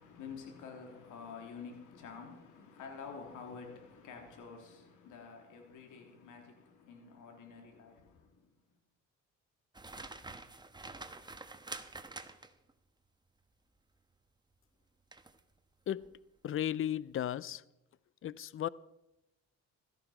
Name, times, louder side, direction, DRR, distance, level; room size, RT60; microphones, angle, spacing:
voice 1, 0.0-8.5, left 5 dB, 90° left, 3.2 m, -49 dB
sound 1, 9.7-12.7 15.1-15.4 15.9-16.1, right 3 dB, 15° right, 1.2 m, -47 dB
voice 2, 16.4-17.6 18.2-18.7, left 11 dB, 45° left, 0.6 m, -35 dB
16.0 x 13.5 x 5.0 m
cardioid pair, 90°, 30 cm